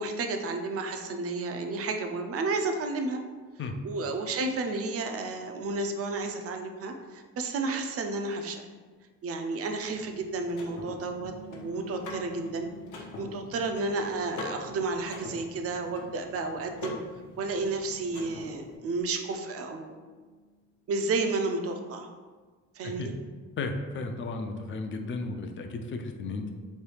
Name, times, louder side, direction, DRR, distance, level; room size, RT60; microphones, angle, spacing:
voice 1, 0.0-3.2 3.8-8.6 9.2-12.7 13.0-17.0 17.4-19.9 20.9-22.1 22.7-23.1, right 3 dB, 50° right, 5 dB, 0.4 m, -32 dB
Car / Mechanisms, 9.8-18.8, left 3 dB, 70° left, 0.7 m, -44 dB
sound 1, 11.0-20.6, left 1 dB, 85° right, 0.9 m, -53 dB
voice 2, 23.6-26.5, left 3 dB, 40° left, 5 dB, 0.4 m, -34 dB
3.1 x 2.3 x 3.2 m, 1.4 s
cardioid pair, 90°, 30 cm